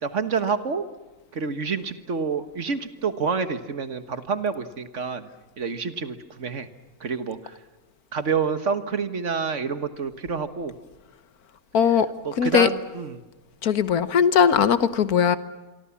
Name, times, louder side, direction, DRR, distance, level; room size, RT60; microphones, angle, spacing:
voice 1, 0.0-0.9 1.3-5.3 5.6-6.7 7.0-7.6 8.1-10.7 12.3-13.2, right 5 dB, 55° right, 11 dB, 1.7 m, -28 dB
voice 2, 11.7-12.1 12.4-12.7 13.6-15.4, left 7 dB, 90° left, 13 dB, 1.7 m, -19 dB
26.5 x 24.0 x 7.2 m, 1.2 s
omnidirectional pair, 1.5 m